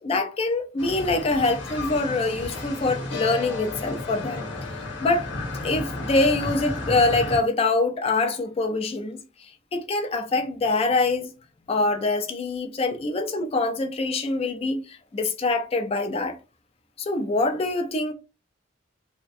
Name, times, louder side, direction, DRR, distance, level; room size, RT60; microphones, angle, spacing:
voice 1, 0.0-4.5 5.0-5.3 5.6-9.2 9.7-11.3 11.7-16.4 17.0-18.1, left 3 dB, 30° left, 0.4 m, -24 dB
sound 1, 0.8-7.4, left 2 dB, 80° left, 0.9 m, -33 dB
2.5 x 2.1 x 2.4 m
head